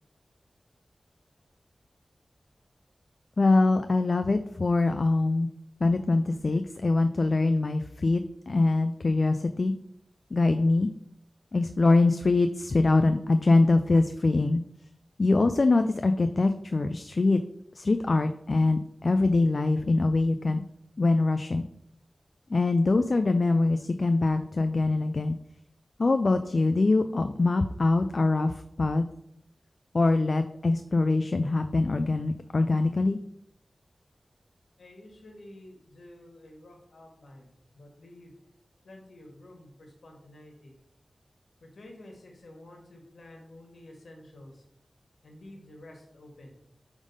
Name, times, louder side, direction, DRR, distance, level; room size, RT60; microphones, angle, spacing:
voice 1, 3.4-5.5 5.8-9.7 10.3-10.9 11.5-14.6 15.2-17.4 17.7-20.6 21.0-21.6 22.5-25.4 26.0-29.0 29.9-33.2, left 3 dB, 60° left, 8 dB, 0.3 m, -23 dB
voice 2, 34.8-38.3 38.8-40.8 41.6-44.6 45.2-46.5, left 1 dB, 85° left, 1 dB, 1.4 m, -50 dB
4.9 x 3.6 x 5.4 m, 0.75 s
wide cardioid pair, 60°, 0 cm